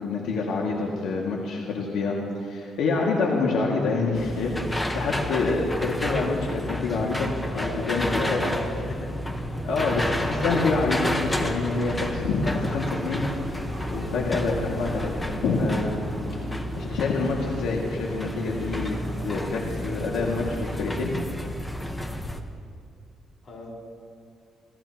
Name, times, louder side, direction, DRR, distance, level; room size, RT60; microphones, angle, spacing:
voice 1, 0.0-8.4 9.6-13.3 13.9-15.1 15.4-16.0 16.3-16.4 16.8-19.0 19.2-21.1, left 3 dB, 90° left, -3 dB, 2.1 m, -27 dB
sound 1, 4.1-22.4, left 1 dB, 15° left, 1.1 m, -31 dB
sound 2, 6.8-21.1, right 1 dB, 10° right, 4.8 m, -38 dB
voice 2, 7.5-9.1 23.4-23.7, left 2 dB, 55° left, -2 dB, 4.7 m, -33 dB
27.5 x 17.5 x 3.0 m, 2.4 s
cardioid pair, 130°, 0 cm